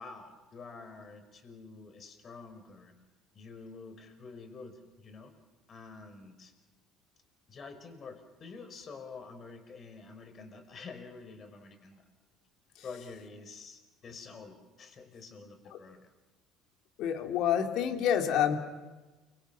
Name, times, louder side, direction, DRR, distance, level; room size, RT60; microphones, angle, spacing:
voice 1, 0.0-2.9 3.3-5.3 5.7-6.5 7.5-12.0 12.8-16.0, left 4 dB, 40° left, 7 dB, 5.2 m, -48 dB
voice 2, 17.0-18.6, left 9 dB, 70° left, 5 dB, 3.2 m, -28 dB
29.5 x 24.5 x 6.3 m, 1.2 s
supercardioid pair, 105°, 0 cm